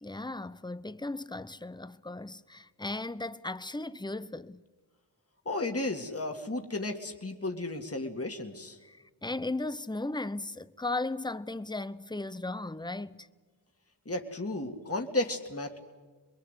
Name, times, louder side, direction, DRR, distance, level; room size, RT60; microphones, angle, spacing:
voice 1, 0.0-4.6 8.8-13.3, left 2 dB, 10° left, 0.7 m, -36 dB
voice 2, 5.5-8.8 14.1-15.8, left 2 dB, 35° left, 2.2 m, -33 dB
26.5 x 22.0 x 8.3 m
cardioid pair, 45°, 43 cm